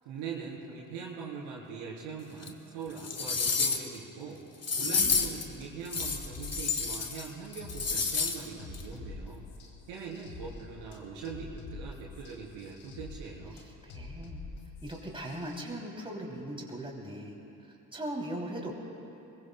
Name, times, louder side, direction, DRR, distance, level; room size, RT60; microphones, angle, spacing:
voice 1, 0.0-4.4 4.7-9.4 9.9-13.6, right 5 dB, 70° right, -4 dB, 3.7 m, -42 dB
sound 1, 2.4-2.5 3.0-4.0 4.6-5.4 5.9-7.3 7.5-8.4 8.7-8.8, left 5 dB, 30° left, 1.5 m, -30 dB
voice 2, 4.8-5.2 13.9-14.4 14.8-17.4 17.9-18.7, right 1 dB, 10° right, -2 dB, 3.0 m, -39 dB
sound 2, 5.0-15.6, left 3 dB, 70° left, 2.0 m, -46 dB
25.0 x 21.5 x 2.3 m, 2.9 s
figure-of-eight pair, 45°, 49 cm